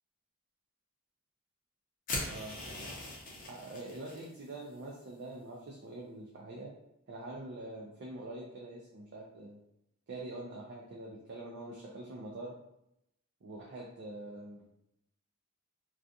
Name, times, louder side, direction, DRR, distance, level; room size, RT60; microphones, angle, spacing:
sound 1, 2.1-4.3, left 2 dB, 40° left, 0.6 m, -40 dB
voice 1, 2.3-2.6 3.5-6.7 7.1-9.6 10.1-12.5 13.4-14.6, right 2 dB, 50° right, -3 dB, 0.4 m, -44 dB
2.4 x 2.3 x 2.6 m, 0.81 s
head